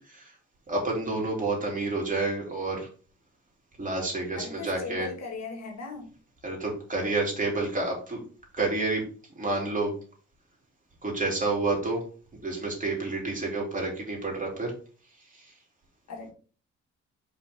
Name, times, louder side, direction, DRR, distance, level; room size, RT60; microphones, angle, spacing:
voice 1, 0.7-2.9 3.8-5.1 6.4-8.2 8.5-9.0 9.4-9.9 11.0-12.0 12.4-14.7, right 2 dB, 25° right, -2 dB, 3.2 m, -29 dB
voice 2, 4.4-6.1 16.1-16.3, left 4 dB, 60° left, 1 dB, 2.1 m, -38 dB
5.7 x 4.9 x 3.7 m, 0.39 s
cardioid pair, 90°, 30 cm